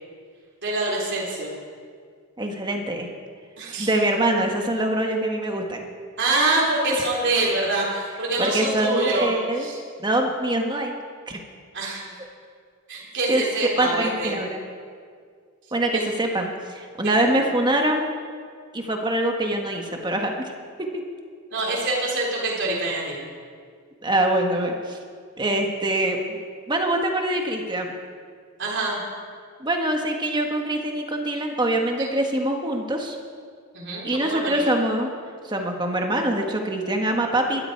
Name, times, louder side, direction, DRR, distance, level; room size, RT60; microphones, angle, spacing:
voice 1, 0.6-1.5 3.6-3.9 6.2-9.3 9.6-9.8 11.7-12.0 12.9-14.3 15.9-16.0 17.0-17.3 21.5-23.2 28.6-29.0 32.0-32.1 33.7-34.6, right 2 dB, 55° right, -4 dB, 3.6 m, -25 dB
voice 2, 2.4-3.1 3.8-5.8 8.4-9.7 10.0-10.9 11.3-11.4 13.3-13.4 13.8-14.6 15.7-18.1 18.7-20.5 20.8-20.9 24.0-25.0 25.4-26.4 26.7-27.9 29.6-33.2 34.0-35.1 35.4-37.7, right 1 dB, 20° right, 2 dB, 1.6 m, -24 dB
20.5 x 13.0 x 4.7 m, 2.1 s
head